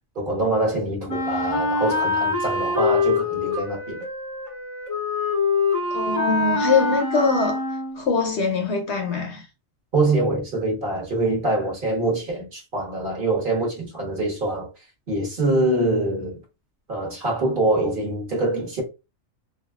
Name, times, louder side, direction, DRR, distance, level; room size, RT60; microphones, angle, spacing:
voice 1, 0.1-4.0 9.9-14.7 15.1-16.4 16.9-18.8, right 2 dB, 40° right, 1.1 m, -24 dB
Wind instrument woodwind instrument, 1.1-8.1, left 4 dB, 25° left, 0.4 m, -24 dB
voice 2, 5.9-7.6 7.9-9.5, left 4 dB, 65° left, 0.8 m, -23 dB
3.3 x 2.3 x 2.3 m
omnidirectional pair, 1.4 m